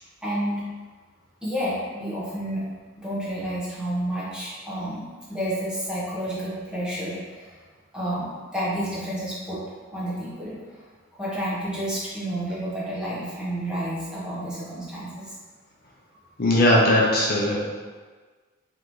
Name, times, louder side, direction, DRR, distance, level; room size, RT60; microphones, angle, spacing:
voice 1, 0.2-0.6 1.4-2.6 3.0-5.0 5.3-7.6 7.9-9.6 9.9-10.6 11.2-15.3, right 1 dB, 5° right, -9 dB, 1.2 m, -30 dB
voice 2, 16.4-17.6, left 1 dB, 45° left, -4 dB, 0.7 m, -19 dB
4.6 x 3.5 x 3.2 m, 1.5 s
head